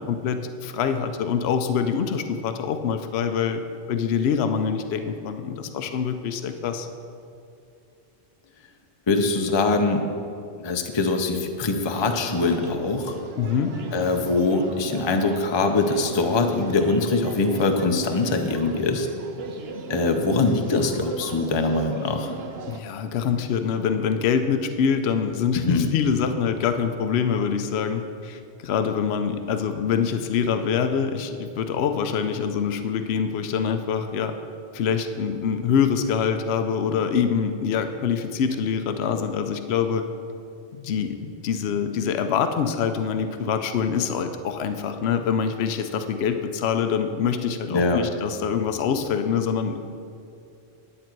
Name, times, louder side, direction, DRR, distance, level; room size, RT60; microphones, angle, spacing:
voice 1, 0.0-3.6 3.9-6.9 13.4-13.7 22.7-34.3 34.7-40.0 40.7-49.9, left 7 dB, 75° left, 8 dB, 0.9 m, -25 dB
voice 2, 9.1-10.1 10.6-13.2 13.9-19.1 19.9-22.3 25.5-25.9 47.7-48.1, left 3 dB, 30° left, 5 dB, 0.6 m, -23 dB
sound 1, 11.9-22.8, right 4 dB, 70° right, 1.0 m, -37 dB
10.5 x 8.6 x 4.5 m, 2.5 s
omnidirectional pair, 1.1 m